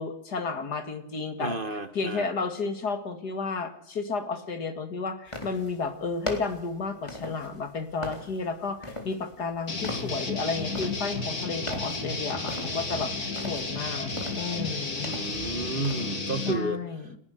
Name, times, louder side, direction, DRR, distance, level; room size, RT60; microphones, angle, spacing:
voice 1, 0.0-1.6 1.9-15.1 16.5-17.2, left 4 dB, 85° left, 8 dB, 2.9 m, -32 dB
voice 2, 1.4-2.3 15.1-16.8, right 2 dB, 35° right, 11 dB, 1.7 m, -31 dB
sound 1, 5.3-16.1, left 1 dB, 20° left, 3.8 m, -41 dB
sound 2, 9.7-16.5, left 3 dB, 70° left, 3.5 m, -32 dB
29.5 x 12.0 x 8.1 m, 0.77 s
omnidirectional pair, 1.7 m